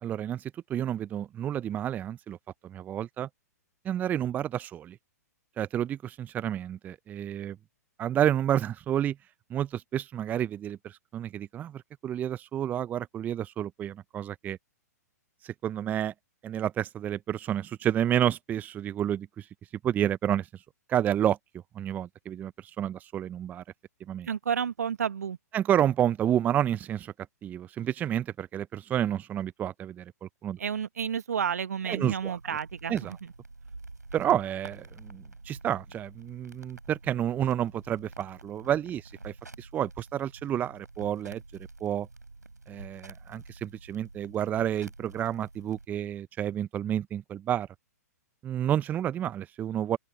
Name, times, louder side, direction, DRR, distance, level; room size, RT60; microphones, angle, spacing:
voice 1, 0.0-2.4 2.6-3.3 3.8-5.0 5.6-7.6 8.0-9.2 9.5-14.6 15.4-16.1 16.4-19.5 19.8-20.6 20.9-21.4 21.7-23.6 24.1-24.3 25.5-27.1 27.4-30.6 31.9-32.4 32.9-33.2 34.1-42.1 42.7-47.7 48.4-50.0, right 10 dB, 20° right, 0.7 m, -30 dB
voice 2, 24.2-25.4 30.6-33.2, right 7 dB, 65° right, 1.6 m, -31 dB
sound 1, 31.8-45.9, right 3 dB, 85° right, 5.3 m, -48 dB
open air
figure-of-eight pair, 115°, 9 cm